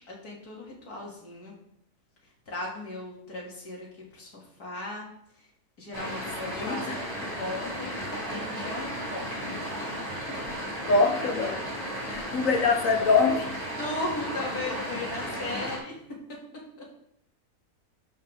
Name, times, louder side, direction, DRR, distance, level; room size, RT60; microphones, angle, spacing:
voice 1, 0.1-1.5 2.5-3.9 4.1-5.1 5.8-7.1 7.4-8.0 8.3-9.6 13.8-16.0, left 2 dB, 80° left, -3 dB, 3.0 m, -37 dB
sound 1, 5.9-15.8, equal, 25° right, 2.4 m, -34 dB
voice 2, 6.4-7.0 10.8-13.6, left 4 dB, 60° left, 4 dB, 1.5 m, -25 dB
12.0 x 5.7 x 3.5 m, 0.73 s
omnidirectional pair, 1.6 m